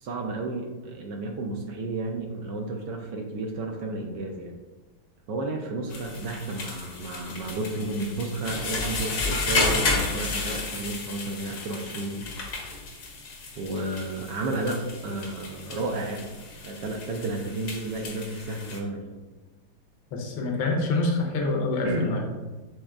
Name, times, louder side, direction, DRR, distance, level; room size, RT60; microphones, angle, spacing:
voice 1, 0.0-4.5 5.3-12.3 13.6-16.3 16.6-19.1 21.4-21.5 21.8-22.1, right 2 dB, 75° right, 2 dB, 1.1 m, -32 dB
sound 1, 5.9-18.8, left 3 dB, 60° left, 0.9 m, -32 dB
voice 2, 20.1-22.2, left 2 dB, 85° left, 1 dB, 1.6 m, -26 dB
6.3 x 3.4 x 2.3 m, 1.2 s
omnidirectional pair, 2.2 m